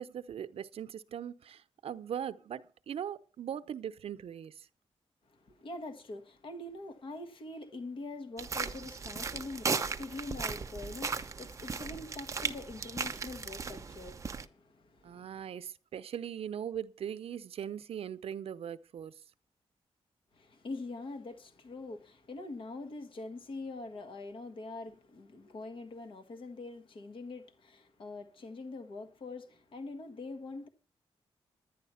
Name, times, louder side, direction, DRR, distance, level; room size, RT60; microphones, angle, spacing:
voice 1, 0.0-4.7 15.0-19.1, right 9 dB, 70° right, 0.7 m, -40 dB
voice 2, 5.3-15.4 20.3-30.7, left 2 dB, 55° left, 1.5 m, -44 dB
sound 1, 8.4-14.5, right 5 dB, 30° right, 0.8 m, -37 dB
11.0 x 10.5 x 5.7 m
wide cardioid pair, 155°, 10 cm